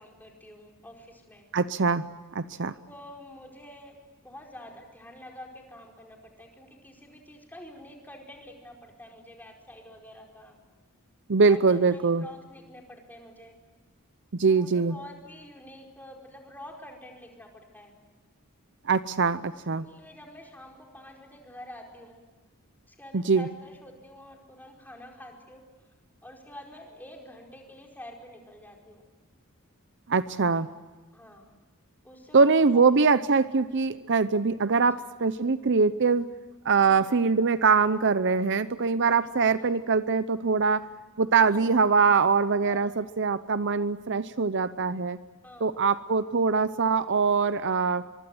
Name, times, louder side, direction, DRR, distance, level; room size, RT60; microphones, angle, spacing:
voice 1, 0.0-1.5 2.9-4.0 4.2-10.5 11.4-13.5 14.5-17.9 19.5-22.2 22.9-25.6 26.2-29.0 31.1-31.5 32.0-32.9 34.7-35.0 36.7-37.3 39.1-39.6 41.4-41.8 42.6-42.9 45.4-45.8, left 1 dB, 10° left, 1 dB, 4.7 m, -47 dB
voice 2, 1.5-2.0 2.3-2.7 11.3-12.2 14.3-15.0 18.8-19.9 23.1-23.5 30.1-30.7 32.3-36.3 36.6-40.8 41.2-45.2 45.6-48.0, right 4 dB, 55° right, 14 dB, 0.7 m, -23 dB
24.5 x 24.5 x 7.8 m, 1.2 s
head